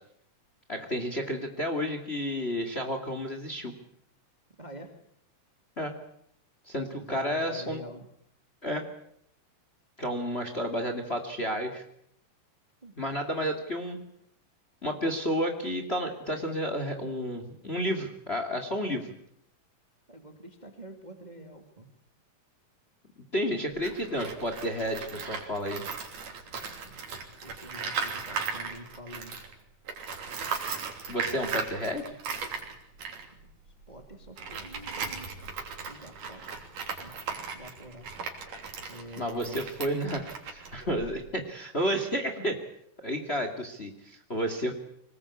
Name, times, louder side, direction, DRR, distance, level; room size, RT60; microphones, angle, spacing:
voice 1, 0.7-3.7 5.8-6.0 6.7-7.8 8.6-8.9 10.0-11.8 13.0-14.0 14.8-19.1 23.3-25.9 31.1-32.2 39.2-42.6 43.0-44.7, equal, 20° left, 7 dB, 2.3 m, -31 dB
voice 2, 4.6-5.0 7.0-8.1 12.8-13.0 20.1-21.9 26.8-27.1 27.4-29.4 33.2-33.6 33.9-35.3 35.9-36.6 37.0-38.1 38.9-39.7, right 1 dB, 15° right, 5 dB, 2.2 m, -47 dB
Tools, 23.7-29.5 29.9-41.3, right 5 dB, 85° right, 4.7 m, -37 dB
24.5 x 20.0 x 8.6 m, 0.72 s
omnidirectional pair, 3.5 m